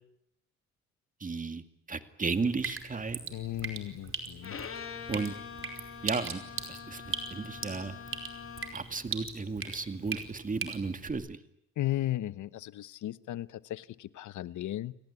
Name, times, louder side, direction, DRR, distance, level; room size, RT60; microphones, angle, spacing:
voice 1, 1.2-3.2 5.1-5.3 6.0-6.4 6.7-7.0 7.3-8.0 8.7-11.4, right 4 dB, 25° right, 9 dB, 2.3 m, -34 dB
Drip, 2.3-11.1, right 5 dB, 45° right, 5.0 m, -40 dB
voice 2, 3.3-4.6 11.8-14.9, left 14 dB, 75° left, 16 dB, 1.1 m, -35 dB
Bowed string instrument, 4.4-8.9, left 7 dB, 45° left, 2.7 m, -44 dB
29.5 x 18.5 x 9.8 m, 0.76 s
cardioid pair, 90°, 30 cm